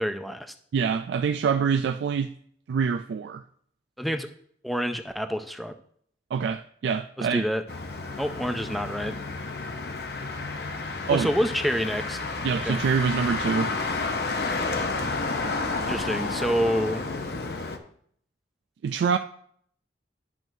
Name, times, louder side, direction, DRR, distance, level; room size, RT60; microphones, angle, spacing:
voice 1, 0.0-0.5 4.0-4.3 4.6-5.7 7.2-7.6 8.2-9.2 11.1-12.2 12.7-12.8 15.9-17.0, equal, ahead, 0.4 m, -27 dB
voice 2, 0.7-2.3 2.7-3.4 6.3-7.5 11.1-11.3 12.4-13.7 18.8-19.2, right 6 dB, 80° right, 0.3 m, -25 dB
Motor vehicle (road), 7.7-17.8, left 3 dB, 60° left, 0.7 m, -31 dB
10.5 x 6.1 x 2.7 m
head